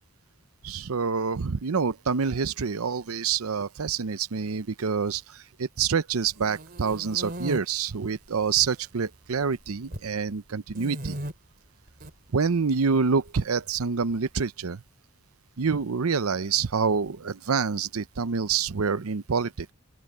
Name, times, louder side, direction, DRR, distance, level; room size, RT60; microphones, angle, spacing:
voice 1, 0.6-11.2 12.3-14.8 15.6-19.7, right 5 dB, 85° right, 0.7 m, -27 dB
sound 1, 6.2-7.6 8.3-8.9 9.1-10.1 10.7-11.3 11.9-12.1 13.3-14.2, right 1 dB, 45° right, 3.2 m, -37 dB
open air
head